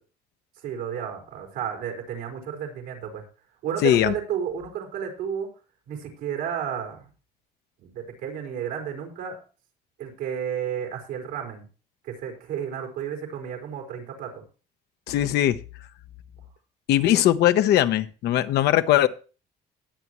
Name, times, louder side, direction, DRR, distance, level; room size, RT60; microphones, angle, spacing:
voice 1, 0.6-3.2 3.6-5.5 5.9-7.1 7.8-9.4 10.0-11.6 12.0-14.4, right 8 dB, 90° right, 2 dB, 4.7 m, -32 dB
voice 2, 3.8-4.1 15.1-15.6 16.9-19.1, left 12 dB, 75° left, 10 dB, 1.0 m, -20 dB
20.5 x 8.4 x 3.1 m, 0.35 s
cardioid pair, 110°, 17 cm